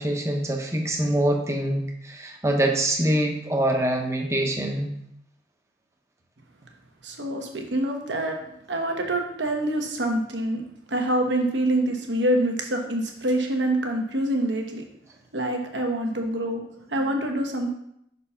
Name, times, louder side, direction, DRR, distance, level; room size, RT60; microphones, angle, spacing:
voice 1, 0.0-4.9, right 1 dB, 15° right, 2 dB, 0.8 m, -24 dB
voice 2, 7.0-8.4 8.7-10.6 10.9-14.8 15.3-17.7, right 1 dB, 75° right, 2 dB, 1.1 m, -26 dB
5.5 x 4.3 x 5.6 m, 0.75 s
head